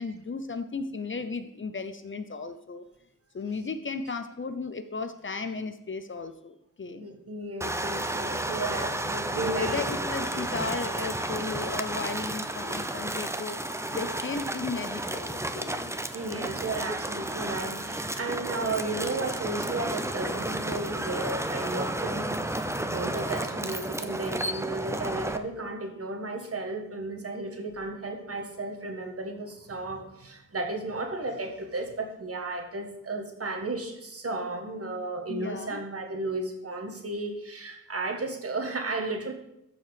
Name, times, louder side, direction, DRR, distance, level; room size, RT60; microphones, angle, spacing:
voice 1, 0.0-2.8 3.3-7.1 9.3-13.6 13.9-16.2 35.3-35.8, left 4 dB, 40° left, 9 dB, 0.7 m, -35 dB
voice 2, 7.0-9.8 10.2-10.5 13.9-14.0 16.1-39.3, right 2 dB, 45° right, 4 dB, 1.6 m, -34 dB
sound 1, 7.6-25.4, right 1 dB, 10° right, 0.6 m, -32 dB
14.0 x 4.7 x 5.1 m, 0.83 s
wide cardioid pair, 95°, 31 cm